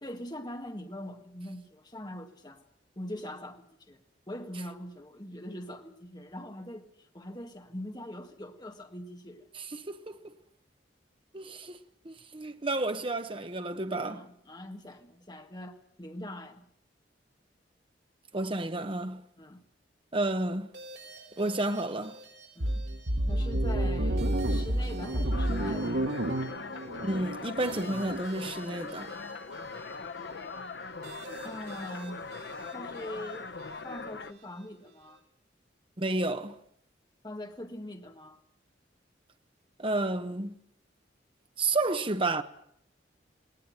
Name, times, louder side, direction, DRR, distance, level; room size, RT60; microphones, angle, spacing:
voice 1, 0.0-2.6 3.0-9.5 14.1-16.7 19.4-19.6 22.6-22.9 23.3-26.0 31.4-32.2 32.7-33.6 33.8-35.2 37.2-38.4, left 1 dB, 25° left, 1.8 m, -42 dB
voice 2, 9.7-10.2 11.3-11.8 12.0-14.2 18.3-19.2 20.1-20.7 21.4-22.2 27.0-29.1 36.0-36.6 39.8-40.5 41.6-42.4, right 2 dB, 30° right, 1.2 m, -31 dB
sound 1, 20.7-35.2, right 3 dB, 60° right, 5.8 m, -51 dB
sound 2, 22.6-28.2, right 1 dB, 85° right, 1.6 m, -30 dB
sound 3, 25.3-34.3, left 4 dB, 65° left, 0.9 m, -41 dB
19.0 x 19.0 x 9.1 m
head